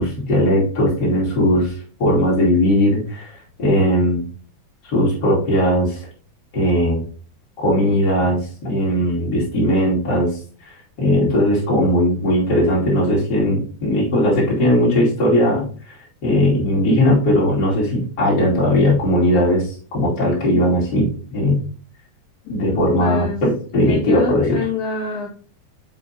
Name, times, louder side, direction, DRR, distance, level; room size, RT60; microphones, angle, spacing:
voice 1, 0.0-1.7 2.0-3.3 3.6-4.2 4.8-6.0 6.5-7.0 7.6-10.4 11.0-15.9 16.2-21.6 22.5-24.6, equal, 30° left, -5 dB, 2.8 m, -18 dB
voice 2, 22.6-23.5 23.8-25.3, left 5 dB, 70° left, 1 dB, 2.7 m, -26 dB
7.2 x 5.1 x 2.8 m, 0.42 s
omnidirectional pair, 4.3 m